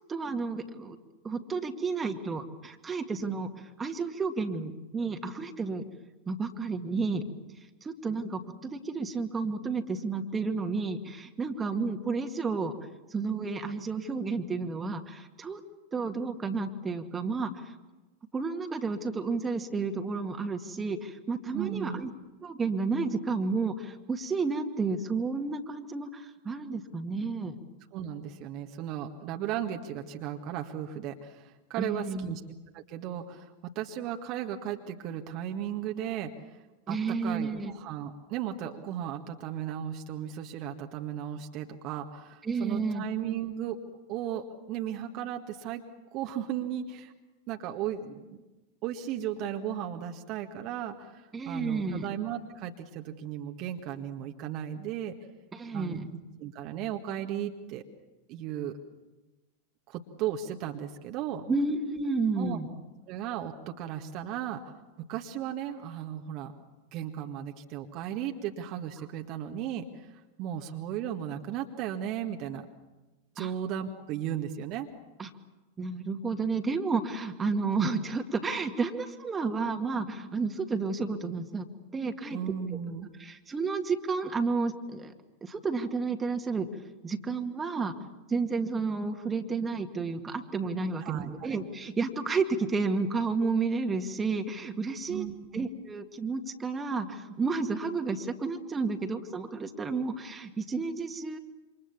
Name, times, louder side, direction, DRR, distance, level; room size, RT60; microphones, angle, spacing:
voice 1, 0.1-1.0 1.2-3.5 3.8-5.8 6.3-7.3 7.8-12.7 13.1-15.6 15.9-17.7 18.3-22.1 22.4-27.6 31.8-32.4 36.9-37.7 42.4-43.0 51.3-52.1 55.5-56.1 61.5-62.7 73.4-73.5 75.2-75.3 75.8-81.7 81.9-82.4 83.2-85.1 85.4-86.7 87.0-87.9 88.3-95.3 95.5-101.4, right 4 dB, 15° right, 5 dB, 2.1 m, -31 dB
voice 2, 21.5-22.0 27.9-32.4 32.7-36.6 36.9-43.8 44.1-45.8 46.1-47.1 47.5-48.4 48.8-55.1 55.7-56.0 56.4-57.8 58.3-58.8 59.9-61.5 62.4-62.6 63.1-66.5 66.9-72.7 73.4-74.9 82.3-83.1 91.0-91.6 95.1-95.7, right 10 dB, 40° right, 4 dB, 1.7 m, -36 dB
28.5 x 26.0 x 7.2 m, 1.1 s
figure-of-eight pair, 90°, 0 cm